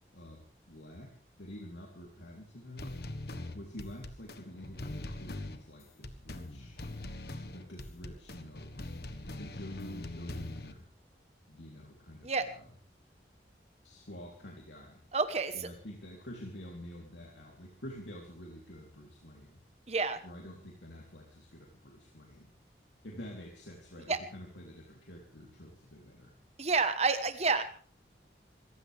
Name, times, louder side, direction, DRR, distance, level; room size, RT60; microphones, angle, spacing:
voice 1, 0.1-3.0 3.5-6.8 7.5-8.7 9.1-10.9 11.5-12.7 13.8-15.0 15.5-19.6 20.2-22.5 23.0-26.3, left 1 dB, 85° left, -1 dB, 3.3 m, -48 dB
sound 1, 2.8-10.7, left 1 dB, 60° left, 1.4 m, -42 dB
voice 2, 15.1-15.7 19.9-20.2 24.1-24.2 26.6-27.6, right 4 dB, 35° right, 9 dB, 1.1 m, -29 dB
26.0 x 15.0 x 3.5 m, 0.42 s
head